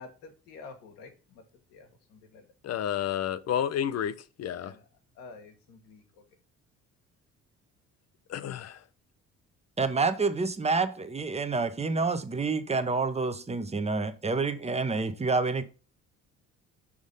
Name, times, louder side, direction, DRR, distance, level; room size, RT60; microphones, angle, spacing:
voice 1, 0.0-1.4 1.7-2.5 4.6-4.9 5.1-6.2, left 4 dB, 75° left, 1.5 m, -49 dB
voice 2, 2.6-4.8 8.3-8.8, left 9 dB, 45° left, 0.7 m, -31 dB
voice 3, 9.8-15.6, right 4 dB, 20° right, 0.9 m, -28 dB
6.2 x 3.7 x 5.3 m
hypercardioid pair, 55°, 35 cm